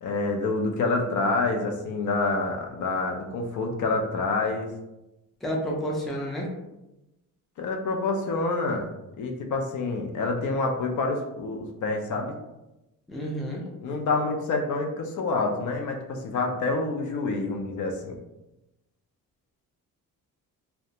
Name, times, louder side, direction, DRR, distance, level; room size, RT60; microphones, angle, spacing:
voice 1, 0.0-4.7 7.6-8.9 9.2-12.4 13.8-18.2, left 3 dB, 60° left, 2 dB, 0.5 m, -27 dB
voice 2, 5.4-6.5 13.1-13.6, equal, ahead, -2 dB, 0.4 m, -30 dB
2.4 x 2.2 x 2.8 m, 0.96 s
cardioid pair, 125°, 34 cm